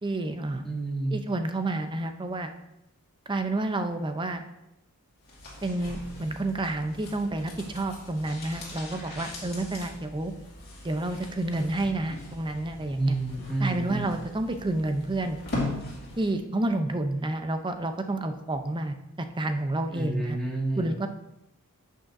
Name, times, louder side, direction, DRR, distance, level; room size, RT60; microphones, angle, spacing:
voice 1, 0.0-0.7 1.1-2.5 3.3-4.4 5.6-10.3 10.8-13.1 13.6-15.4 16.2-20.4 20.8-21.1, right 2 dB, 20° right, 7 dB, 0.5 m, -29 dB
voice 2, 0.6-1.2 12.9-14.1 19.9-20.9, right 2 dB, ahead, -5 dB, 1.9 m, -30 dB
sound 1, 5.2-16.4 16.7-16.8, left 1 dB, 45° left, 2.3 m, -40 dB
10.5 x 6.4 x 2.6 m, 0.88 s
head